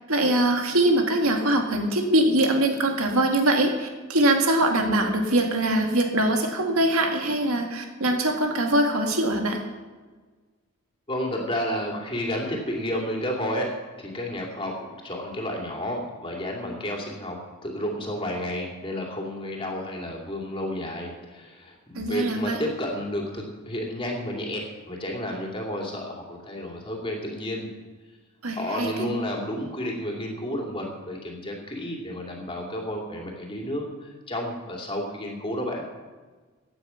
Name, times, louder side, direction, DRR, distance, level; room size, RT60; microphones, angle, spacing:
voice 1, 0.1-9.6 21.9-22.6 28.4-29.1, right 1 dB, 85° right, 3 dB, 2.1 m, -23 dB
voice 2, 11.1-13.7 14.0-27.7 28.5-35.9, equal, 25° left, 0 dB, 2.8 m, -31 dB
16.0 x 9.4 x 5.8 m, 1.4 s
head